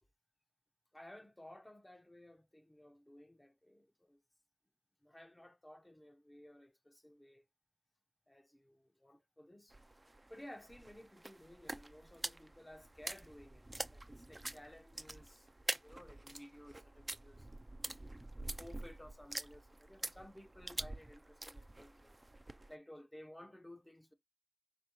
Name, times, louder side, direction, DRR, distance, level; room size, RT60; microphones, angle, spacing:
voice 1, 0.9-4.2 5.0-7.4 8.3-9.8 10.3-17.5 18.4-22.2 22.7-24.1, left 1 dB, 20° left, 1.0 m, -56 dB
sound 1, 9.7-22.7, right 1 dB, 35° right, 0.5 m, -46 dB
5.4 x 3.3 x 3.0 m
wide cardioid pair, 45°, 0 cm